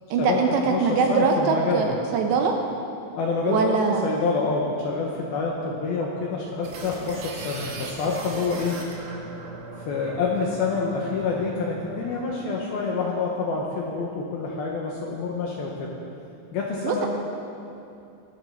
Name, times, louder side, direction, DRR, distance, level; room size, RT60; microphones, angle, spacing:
voice 1, 0.1-2.6 3.5-4.1 16.8-17.1, right 5 dB, 75° right, 3 dB, 2.8 m, -22 dB
voice 2, 0.7-1.9 3.2-8.8 9.9-15.9 16.5-17.1, left 4 dB, 75° left, -2 dB, 2.3 m, -27 dB
sound 1, 6.6-12.4, right 3 dB, 60° right, 3.0 m, -39 dB
21.5 x 7.4 x 6.2 m, 2.7 s
omnidirectional pair, 5.6 m